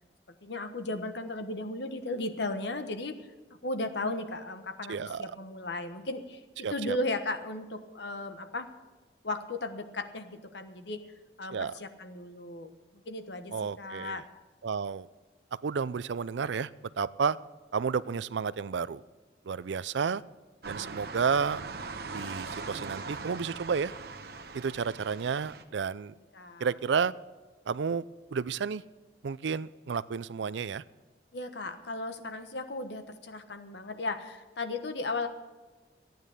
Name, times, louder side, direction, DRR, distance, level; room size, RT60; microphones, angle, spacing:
voice 1, 0.4-3.3 3.6-8.7 9.2-11.0 11.4-12.7 13.1-14.2 26.3-26.7 31.3-35.3, left 2 dB, 70° left, 8 dB, 1.2 m, -36 dB
voice 2, 4.9-5.3 6.6-7.0 11.5-11.7 13.5-14.2 14.6-15.1 15.6-16.7 17.0-17.4 17.7-19.0 19.5-20.2 20.7-21.6 22.1-23.9 24.5-26.1 26.6-27.1 27.7-28.1 28.3-28.8 29.2-30.8, right 6 dB, 80° right, 18 dB, 0.4 m, -31 dB
sound 1, 20.6-25.6, right 4 dB, 55° right, 1.0 m, -41 dB
14.5 x 9.3 x 6.6 m, 1.2 s
head